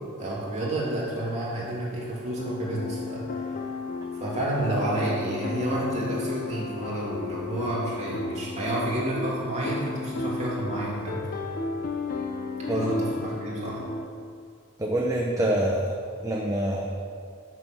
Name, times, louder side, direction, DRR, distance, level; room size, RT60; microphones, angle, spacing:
voice 1, 0.2-3.6 4.1-11.5 12.7-13.8, right 1 dB, 30° right, -6 dB, 2.7 m, -30 dB
sound 1, 2.4-14.1, left 3 dB, 40° left, 0.6 m, -33 dB
voice 2, 12.7-13.0 14.8-15.9 16.2-16.9, right 1 dB, 15° right, -1 dB, 0.7 m, -26 dB
10.5 x 6.2 x 6.1 m, 2.3 s
head